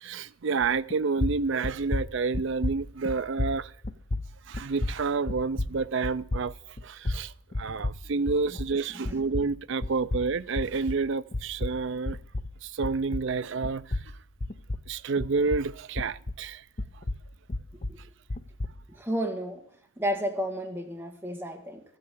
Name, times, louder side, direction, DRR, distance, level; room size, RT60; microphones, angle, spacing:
voice 1, 0.0-3.7 4.5-6.5 6.8-12.2 12.6-13.9 14.9-16.6, right 4 dB, 55° right, 0.4 m, -29 dB
sound 1, 0.6-8.8 9.1-13.4 13.6-16.5 16.8-18.8, left 2 dB, 35° left, 0.7 m, -33 dB
voice 2, 18.9-19.6 20.0-21.8, equal, 10° right, 1.7 m, -32 dB
13.5 x 8.9 x 8.5 m
head